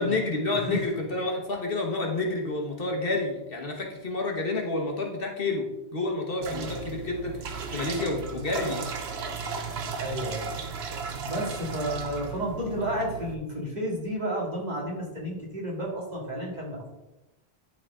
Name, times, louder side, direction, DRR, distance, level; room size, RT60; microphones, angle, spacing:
voice 1, 0.0-5.7 5.9-8.9, left 2 dB, 60° left, 1 dB, 1.5 m, -29 dB
sound 1, 6.4-13.4, right 5 dB, 75° right, 1.1 m, -35 dB
voice 2, 10.0-10.5 11.2-16.9, equal, 40° right, -3 dB, 2.3 m, -32 dB
11.0 x 4.2 x 3.7 m, 0.98 s
omnidirectional pair, 1.1 m